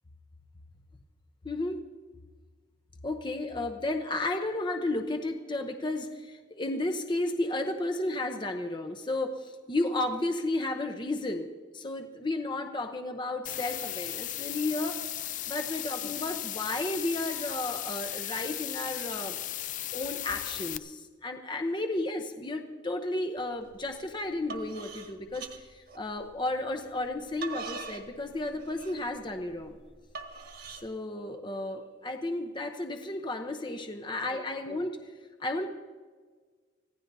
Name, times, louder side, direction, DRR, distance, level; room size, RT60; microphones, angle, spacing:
voice 1, 1.4-1.8 3.0-15.0 15.5-19.4 19.9-29.8 30.7-35.0 35.4-35.7, left 2 dB, 25° left, 5 dB, 0.8 m, -33 dB
sound 1, 13.5-20.8, left 13 dB, 40° left, 0.4 m, -36 dB
sound 2, 23.7-23.9 24.3-26.4 27.0-30.9, right 4 dB, 55° right, 1.5 m, -42 dB
25.5 x 16.5 x 2.7 m, 1.5 s
head